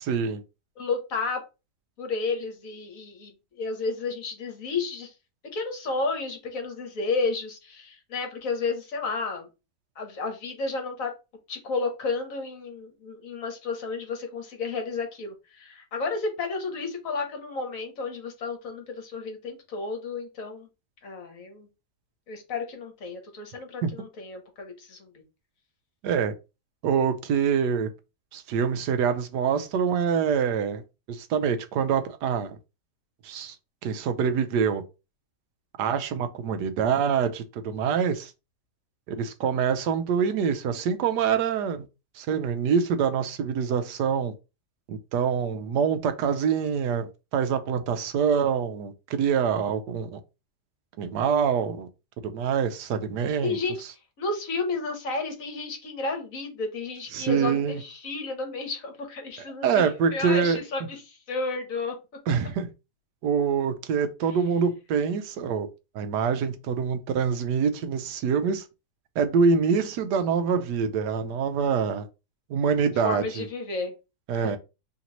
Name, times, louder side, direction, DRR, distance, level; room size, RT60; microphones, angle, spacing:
voice 1, 0.1-0.4 23.8-23.9 26.0-26.3 26.8-27.9 28.3-30.8 31.1-32.5 33.2-33.6 33.8-34.8 35.8-38.3 39.1-41.9 42.2-44.3 44.9-50.2 51.0-51.9 52.3-53.6 57.1-57.8 59.6-60.6 62.3-62.7 63.2-65.7 65.9-68.6 69.2-72.1 72.5-73.5 74.3-74.6, right 6 dB, 85° right, 1.2 m, -25 dB
voice 2, 0.8-1.4 2.0-3.3 3.6-5.1 5.5-9.5 10.0-11.1 11.5-20.7 21.0-21.7 22.3-25.1 53.4-53.8 54.2-61.9 73.0-73.9 74.3-74.6, left 4 dB, 60° left, 1.3 m, -32 dB
3.3 x 2.9 x 3.8 m
omnidirectional pair, 1.7 m